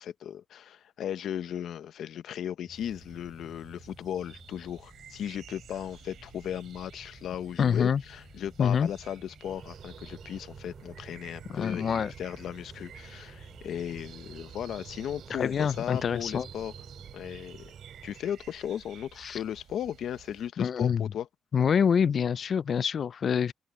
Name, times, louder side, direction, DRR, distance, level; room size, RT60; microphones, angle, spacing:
voice 1, 0.0-16.7 17.1-17.7 18.0-21.3, left 10 dB, 70° left, 1.0 m, -36 dB
sound 1, 2.6-17.4, left 3 dB, 20° left, 3.1 m, -55 dB
sound 2, 2.7-20.5, right 10 dB, 70° right, 3.0 m, -53 dB
voice 2, 7.6-8.0 8.6-8.9 11.5-12.1 15.3-16.5 19.2-19.4 20.6-21.1 21.5-23.5, left 7 dB, 45° left, 0.4 m, -26 dB
sound 3, 9.4-18.2, right 7 dB, 45° right, 7.0 m, -50 dB
cardioid pair, 155°, 0 cm